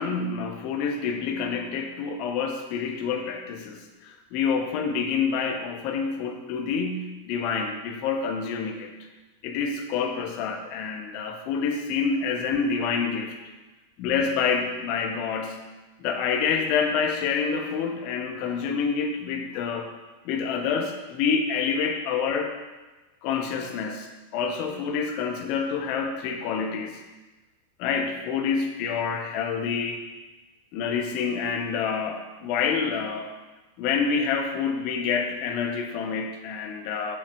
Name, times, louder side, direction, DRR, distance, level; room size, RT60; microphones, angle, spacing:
voice 1, 0.0-8.9 9.4-13.3 14.0-15.6 16.0-19.9 20.2-22.5 23.2-27.0 27.8-30.0 30.7-33.3 33.8-37.2, left 6 dB, 45° left, 4 dB, 1.2 m, -27 dB
7.3 x 6.5 x 5.5 m, 1.2 s
figure-of-eight pair, 90°, 0 cm